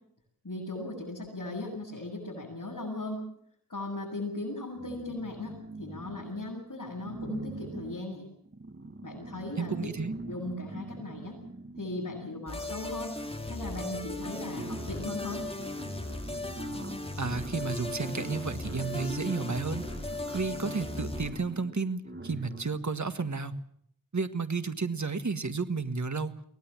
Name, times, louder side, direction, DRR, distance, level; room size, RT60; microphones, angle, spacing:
voice 1, 0.4-3.2 3.7-8.3 9.0-9.7 10.2-11.4 11.8-13.1 13.5-15.4, left 2 dB, 60° left, -5 dB, 8.0 m, -38 dB
sound 1, 4.8-6.6 7.0-12.7 13.6-13.7 14.0-22.9, right 2 dB, 35° right, 1.5 m, -43 dB
voice 2, 9.6-10.1 17.2-19.9 20.3-23.6 24.1-26.4, right 4 dB, 55° right, 10 dB, 1.6 m, -32 dB
sound 2, 12.5-21.3, left 2 dB, 15° left, 3.1 m, -37 dB
23.0 x 18.5 x 7.2 m, 0.67 s
wide cardioid pair, 60°, 34 cm